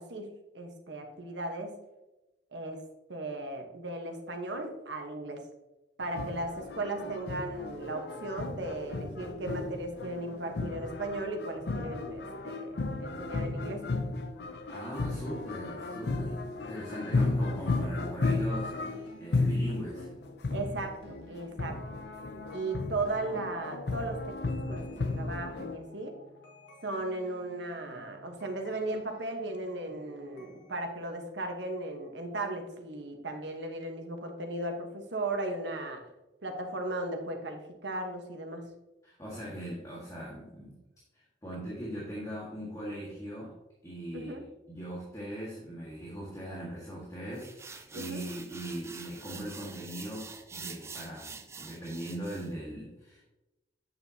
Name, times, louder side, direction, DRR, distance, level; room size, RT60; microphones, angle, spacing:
voice 1, 0.0-1.8 2.5-2.8 3.1-5.4 6.0-13.8 20.5-22.0 22.5-24.4 24.7-26.1 26.8-36.0 36.4-38.7 44.1-44.4 47.9-48.2, right 2 dB, 75° right, 4 dB, 1.2 m, -36 dB
sound 1, 6.0-25.8, left 3 dB, 65° left, 0.6 m, -34 dB
voice 2, 14.7-20.1 39.0-40.8 41.1-43.5 43.8-44.4 44.7-53.3, right 1 dB, 20° left, -6 dB, 1.7 m, -40 dB
sound 2, 15.1-30.9, equal, 85° left, 1.8 m, -56 dB
sound 3, 47.4-52.5, right 5 dB, 15° right, 0.4 m, -46 dB
8.7 x 6.9 x 2.8 m, 1.0 s
head